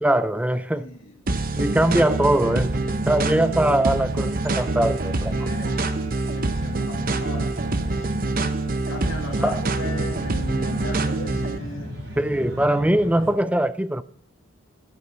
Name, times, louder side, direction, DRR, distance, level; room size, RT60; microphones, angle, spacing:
voice 1, 0.0-0.9 1.6-2.8 3.1-5.4 9.4-9.6 12.2-14.0, right 1 dB, 5° right, 0.4 m, -21 dB
voice 2, 0.7-1.2 1.5-1.7 2.8-3.0 5.4-8.2 8.9-12.3, left 2 dB, 75° left, 2.1 m, -37 dB
sound 1, 1.3-11.6, right 2 dB, 40° right, 0.8 m, -25 dB
sound 2, 3.1-13.3, equal, 55° right, 3.9 m, -38 dB
13.0 x 9.8 x 6.0 m
head